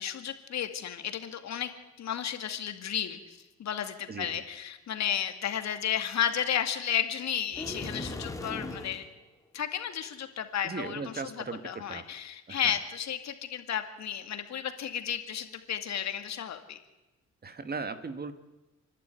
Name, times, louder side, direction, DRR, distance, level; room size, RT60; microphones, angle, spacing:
voice 1, 0.0-1.7 2.0-9.1 9.5-11.1 11.6-16.8, left 9 dB, 65° left, 7 dB, 2.3 m, -33 dB
voice 2, 4.1-4.4 10.6-12.0 12.5-12.8 17.4-18.3, right 4 dB, 30° right, 10 dB, 1.8 m, -37 dB
sound 1, 7.5-9.1, left 2 dB, 10° left, 2.4 m, -38 dB
29.0 x 11.5 x 9.2 m, 1.1 s
cardioid pair, 90°, 30 cm